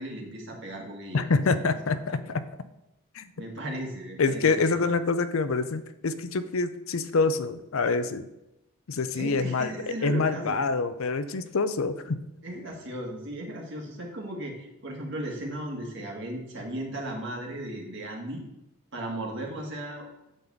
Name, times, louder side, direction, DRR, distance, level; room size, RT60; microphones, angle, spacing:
voice 1, 0.0-1.3 1.5-1.7 2.2-2.3 3.4-4.9 9.2-10.7 12.4-18.4 18.9-20.1, right 1 dB, 55° right, 0 dB, 2.0 m, -36 dB
voice 2, 1.1-2.4 3.1-3.3 4.2-8.3 8.9-9.7 10.0-12.2, left 4 dB, 70° left, 12 dB, 0.6 m, -26 dB
8.9 x 4.0 x 7.1 m, 0.91 s
head